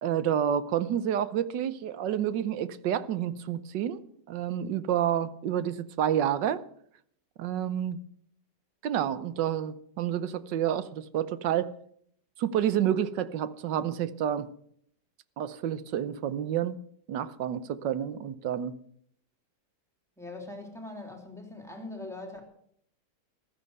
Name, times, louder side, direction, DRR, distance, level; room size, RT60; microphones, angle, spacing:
voice 1, 0.0-4.0 4.3-6.6 7.4-8.0 8.8-11.7 12.4-14.5 15.4-16.8 17.1-18.7, right 10 dB, 80° right, 1.5 m, -29 dB
voice 2, 20.2-22.4, left 2 dB, ahead, 3.1 m, -41 dB
14.5 x 12.5 x 6.7 m
omnidirectional pair, 1.9 m